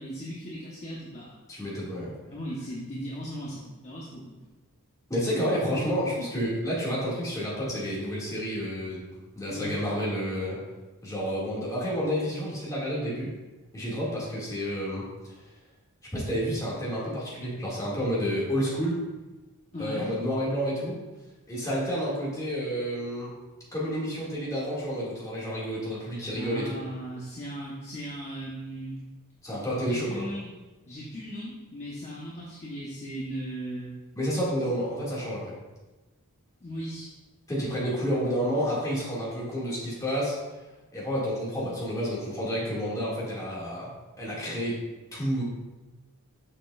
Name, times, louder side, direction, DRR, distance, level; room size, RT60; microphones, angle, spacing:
voice 1, 0.0-1.3 2.3-4.5 5.6-5.9 9.5-9.7 19.7-20.2 26.3-29.0 29.8-30.5 30.9-34.0 36.6-37.1, equal, 30° left, -6 dB, 1.0 m, -37 dB
voice 2, 1.5-2.1 5.1-9.1 9.4-10.6 11.0-13.3 13.7-15.1 16.1-19.0 19.8-21.0 21.5-23.3 23.7-26.8 29.4-30.3 34.2-35.5 37.5-40.4 40.9-43.9 44.2-44.8 45.1-45.4, equal, 15° left, -7 dB, 2.1 m, -30 dB
6.6 x 6.6 x 2.4 m, 1.2 s
head